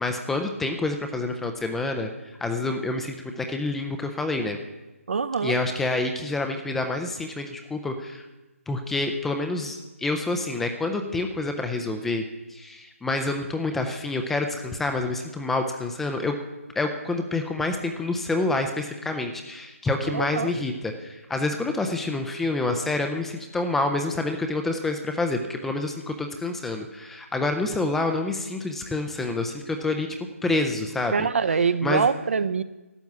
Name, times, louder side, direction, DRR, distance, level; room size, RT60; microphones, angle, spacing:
voice 1, 0.0-4.6 5.4-8.2 8.7-12.2 12.5-16.4 16.8-30.1 30.4-31.3 31.8-32.0, left 2 dB, 5° left, 5 dB, 0.5 m, -27 dB
voice 2, 5.1-5.6 20.1-20.5 31.1-32.6, right 5 dB, 60° right, 14 dB, 0.8 m, -24 dB
12.0 x 7.2 x 9.3 m, 1.1 s
hypercardioid pair, 165°, 8 cm